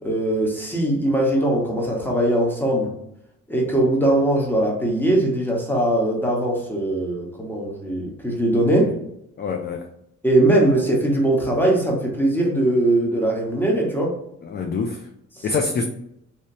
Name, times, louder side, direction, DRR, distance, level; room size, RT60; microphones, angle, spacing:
voice 1, 0.0-2.9 3.5-9.0 10.2-14.2, right 1 dB, 5° left, -1 dB, 1.1 m, -20 dB
voice 2, 9.4-9.9 14.4-15.1 15.4-15.8, left 4 dB, 35° left, 4 dB, 0.4 m, -25 dB
3.2 x 2.9 x 2.8 m, 0.78 s
cardioid pair, 90°, 30 cm